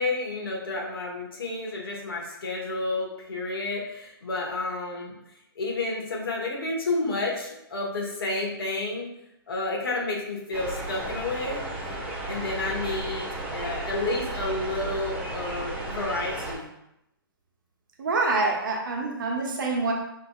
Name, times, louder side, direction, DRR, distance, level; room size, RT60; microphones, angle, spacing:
voice 1, 0.0-5.1 5.5-9.1 9.5-11.6 12.3-16.7, left 2 dB, 70° left, -2 dB, 1.4 m, -30 dB
sound 1, 10.5-16.6, right 2 dB, 10° right, 0.7 m, -34 dB
voice 2, 18.0-19.9, right 3 dB, 55° right, 1 dB, 0.9 m, -26 dB
5.0 x 2.6 x 2.4 m, 0.82 s
hypercardioid pair, 140°, 13 cm